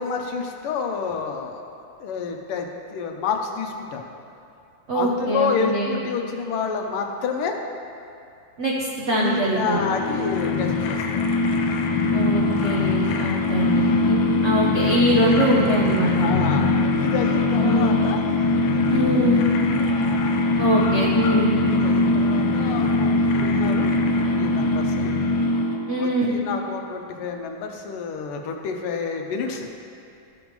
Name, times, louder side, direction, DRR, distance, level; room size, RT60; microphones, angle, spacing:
voice 1, 0.0-1.7 2.0-4.0 4.9-7.6 9.2-11.2 16.2-18.2 18.7-19.0 21.7-25.1 26.0-29.7, left 5 dB, 90° left, 3 dB, 1.7 m, -29 dB
voice 2, 4.9-6.0 8.6-9.8 12.1-16.3 17.6-18.0 18.9-19.4 20.6-21.6 25.9-26.4, right 1 dB, 75° right, -4 dB, 0.6 m, -23 dB
sound 1, 9.3-26.0, left 2 dB, 70° left, 1.2 m, -21 dB
13.0 x 5.2 x 3.2 m, 2.5 s
omnidirectional pair, 2.4 m